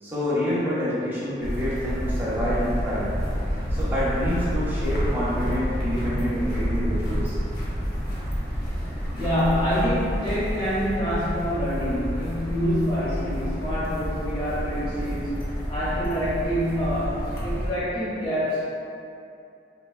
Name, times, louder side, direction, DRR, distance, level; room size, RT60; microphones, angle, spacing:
voice 1, 0.0-3.1 3.7-7.4, equal, 10° right, -10 dB, 0.6 m, -27 dB
sound 1, 1.4-17.7, equal, 55° left, 0.6 m, -29 dB
voice 2, 9.2-18.7, equal, 25° left, -11 dB, 0.9 m, -26 dB
2.9 x 2.2 x 2.3 m, 2.6 s
head